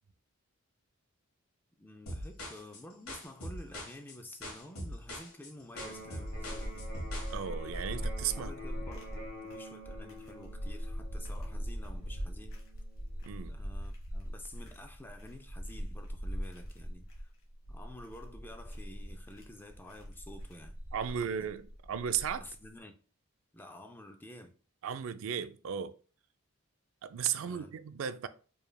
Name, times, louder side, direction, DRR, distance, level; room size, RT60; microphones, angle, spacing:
voice 1, 1.8-6.9 8.4-12.6 13.5-17.3 17.7-20.8 21.1-21.5 22.4-22.9 23.5-24.5 27.4-27.8, left 1 dB, 10° left, 0.4 m, -50 dB
sound 1, 2.1-7.3, left 1 dB, 90° left, 1.4 m, -42 dB
Electric guitar, 5.7-13.7, equal, 50° left, 1.1 m, -49 dB
sound 2, 5.8-22.6, equal, 70° left, 1.3 m, -41 dB
voice 2, 7.3-8.5 13.3-13.6 20.9-22.5 24.8-25.9 27.0-28.3, right 8 dB, 65° right, 0.3 m, -35 dB
4.6 x 3.2 x 2.2 m
head